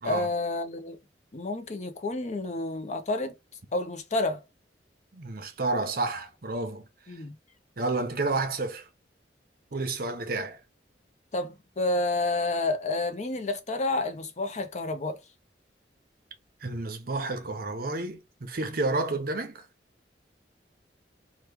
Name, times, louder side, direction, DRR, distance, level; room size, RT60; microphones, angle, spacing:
voice 1, 0.0-1.0 1.3-3.3 3.7-4.4 7.1-7.3 11.3-15.2, left 2 dB, 40° left, 0.6 m, -29 dB
voice 2, 5.1-6.9 7.8-8.9 9.7-10.6 16.6-19.7, right 2 dB, 55° right, 0.8 m, -30 dB
3.0 x 2.3 x 3.3 m
head